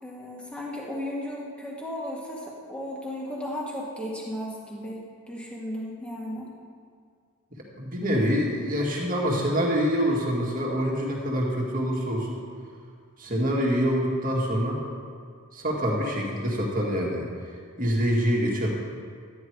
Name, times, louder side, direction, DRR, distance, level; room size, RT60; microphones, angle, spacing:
voice 1, 0.0-5.0 5.3-6.5, left 1 dB, 5° left, -4 dB, 1.8 m, -35 dB
voice 2, 7.8-12.4 13.2-14.8 15.5-17.3 17.8-18.7, equal, 40° right, -2 dB, 2.0 m, -25 dB
12.5 x 10.0 x 4.7 m, 2.1 s
head